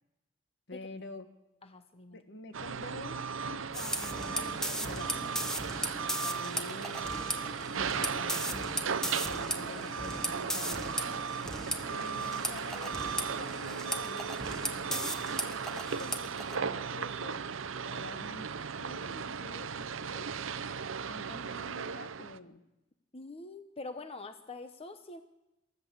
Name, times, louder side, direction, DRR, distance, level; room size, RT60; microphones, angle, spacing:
voice 1, 0.7-1.3 2.1-5.6 6.1-7.2 7.8-11.4 11.9-14.3 14.7-17.4 17.8-18.5 18.8-20.4 21.1-22.6, left 2 dB, 65° left, 9 dB, 1.8 m, -47 dB
voice 2, 1.6-2.2 9.6-9.9 23.1-25.2, left 3 dB, 30° left, 9 dB, 0.9 m, -45 dB
sound 1, 2.5-22.4, right 6 dB, 75° right, 0.7 m, -36 dB
sound 2, 3.7-16.6, equal, 5° left, 1.5 m, -37 dB
27.5 x 13.0 x 8.0 m, 0.98 s
head